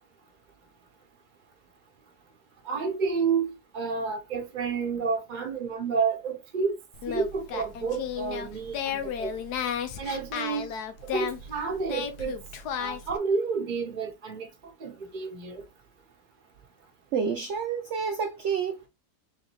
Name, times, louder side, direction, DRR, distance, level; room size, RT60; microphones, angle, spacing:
voice 1, 2.6-6.7 7.1-9.3 10.0-10.7 11.0-12.4 12.8-14.5 14.8-15.6, right 5 dB, 30° right, 1.1 m, -30 dB
Singing, 6.9-13.2, left 7 dB, 75° left, 1.2 m, -34 dB
voice 2, 17.1-18.9, right 6 dB, 70° right, 0.7 m, -29 dB
3.9 x 3.9 x 3.1 m
omnidirectional pair, 1.8 m